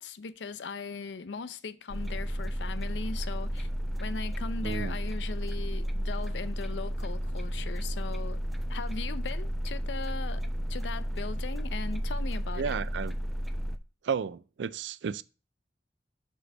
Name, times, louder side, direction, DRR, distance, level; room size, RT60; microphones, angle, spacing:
voice 1, 0.0-3.7 4.0-8.4 8.7-12.8, left 5 dB, 80° left, 0.5 m, -39 dB
sound 1, 1.9-13.8, equal, ahead, 0.6 m, -32 dB
voice 2, 4.6-5.0 12.6-13.2 14.0-15.2, right 6 dB, 85° right, 0.4 m, -33 dB
6.4 x 5.2 x 5.3 m
head